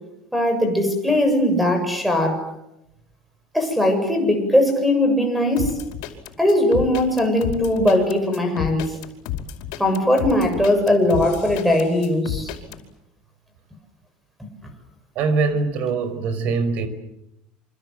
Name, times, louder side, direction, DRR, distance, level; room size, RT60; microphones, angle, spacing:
voice 1, 0.3-2.4 3.5-5.7 6.4-9.0 9.8-12.5 14.4-14.5, left 1 dB, ahead, 6 dB, 7.3 m, -19 dB
sound 1, 5.6-12.8, left 11 dB, 75° left, 5.2 m, -31 dB
voice 2, 15.2-16.9, right 4 dB, 50° right, 12 dB, 5.2 m, -22 dB
28.0 x 25.5 x 7.9 m, 0.87 s
cardioid pair, 150°, 3 cm